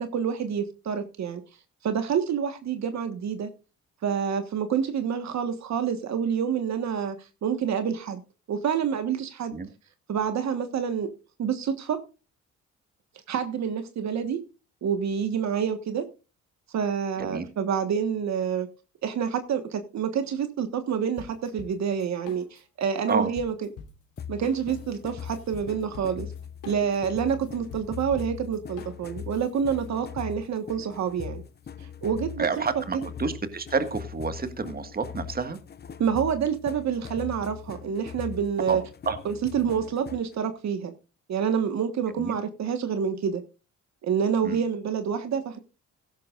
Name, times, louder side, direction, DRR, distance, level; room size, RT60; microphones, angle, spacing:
voice 1, 0.0-1.4 1.8-3.5 4.0-7.2 7.4-8.2 8.5-9.6 10.1-11.1 11.4-12.0 13.3-14.4 14.8-16.0 16.7-18.7 19.0-23.5 24.3-26.3 26.6-31.4 32.0-32.4 36.0-38.8 39.2-40.9 41.3-43.4 44.0-45.6, right 7 dB, 65° right, 1.5 m, -27 dB
voice 2, 17.2-17.5 23.1-23.3 32.4-35.6 38.7-39.2 42.2-42.4 44.4-44.6, right 4 dB, 30° right, 1.8 m, -29 dB
sound 1, 21.2-22.8 23.1-29.9, left 6 dB, 90° left, 3.0 m, -46 dB
sound 2, 24.2-40.4, left 8 dB, 35° left, 0.7 m, -41 dB
16.0 x 12.0 x 2.5 m
cardioid pair, 90°, 30 cm